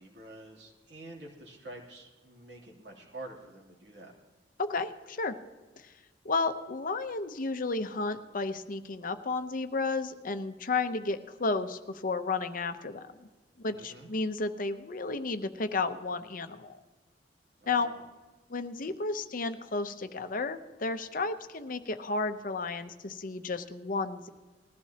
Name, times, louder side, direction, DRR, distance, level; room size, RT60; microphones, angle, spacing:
voice 1, 0.0-4.1 13.7-14.1 17.6-18.0, right 2 dB, 70° right, -1 dB, 3.0 m, -47 dB
voice 2, 4.6-5.4 5.8-5.9 6.2-13.2 13.6-16.8 17.7-17.9 18.5-24.3, left 3 dB, 50° left, 9 dB, 0.7 m, -32 dB
20.0 x 14.5 x 2.9 m, 1.3 s
head